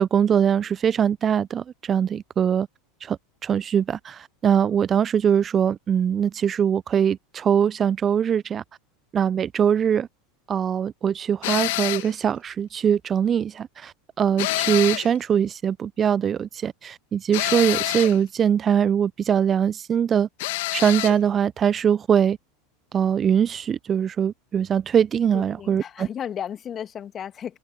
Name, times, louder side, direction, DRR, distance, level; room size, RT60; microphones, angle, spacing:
voice 1, 0.0-2.7 3.0-8.6 9.1-10.1 10.5-20.3 20.7-22.4 22.9-26.1, right 8 dB, 30° right, 0.7 m, -22 dB
sound 1, 11.4-12.1 14.4-15.2 17.3-18.2 20.4-21.2, left 21 dB, 60° left, 1.8 m, -26 dB
voice 2, 25.3-27.6, left 9 dB, 30° left, 2.1 m, -34 dB
open air
figure-of-eight pair, 80°, 0 cm